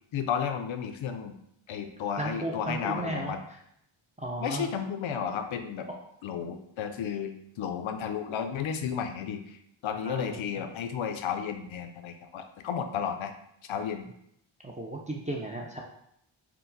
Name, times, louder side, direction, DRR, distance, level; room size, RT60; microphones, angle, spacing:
voice 1, 0.1-1.4 1.7-3.4 4.4-5.9 6.2-9.6 9.8-13.3 13.6-14.1, left 7 dB, 70° left, 7 dB, 0.5 m, -33 dB
voice 2, 2.2-3.3 4.2-4.7 10.0-10.4 14.6-15.8, right 2 dB, 15° right, -2 dB, 0.3 m, -34 dB
4.5 x 2.0 x 3.9 m, 0.74 s
wide cardioid pair, 140°, 49 cm